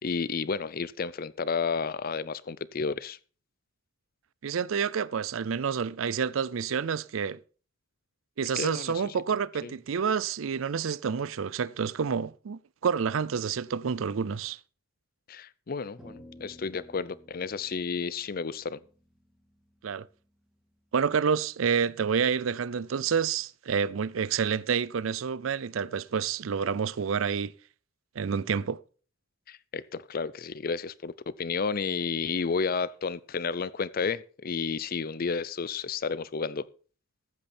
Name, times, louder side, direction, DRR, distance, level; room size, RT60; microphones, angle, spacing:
voice 1, 0.0-3.2 8.6-9.1 9.6-9.7 15.3-18.8 29.5-36.7, left 5 dB, 45° left, 0.5 m, -32 dB
voice 2, 4.4-7.4 8.4-14.6 19.8-20.1 20.9-27.5 28.2-28.8, right 6 dB, 85° right, 0.5 m, -28 dB
sound 1, 16.0-20.5, left 1 dB, 5° right, 2.5 m, -54 dB
14.5 x 8.5 x 4.3 m
head